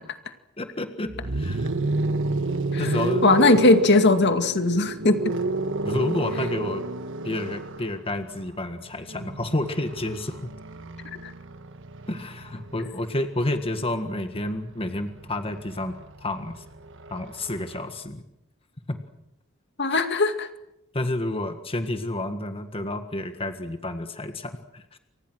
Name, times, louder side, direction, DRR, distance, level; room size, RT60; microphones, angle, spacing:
voice 1, 0.6-1.7 2.8-3.3 5.8-6.8 7.2-10.5 12.1-15.9 16.2-16.6 17.1-18.2 18.9-19.0 19.9-20.0 20.9-25.0, left 1 dB, 25° left, 7 dB, 1.7 m, -30 dB
sound 1, 1.1-13.0 14.3-17.9, right 2 dB, 65° right, 1.5 m, -31 dB
voice 2, 3.2-5.2 11.2-11.3 19.8-20.5, left 2 dB, 55° left, 8 dB, 2.2 m, -19 dB
29.5 x 25.0 x 6.3 m, 0.86 s
head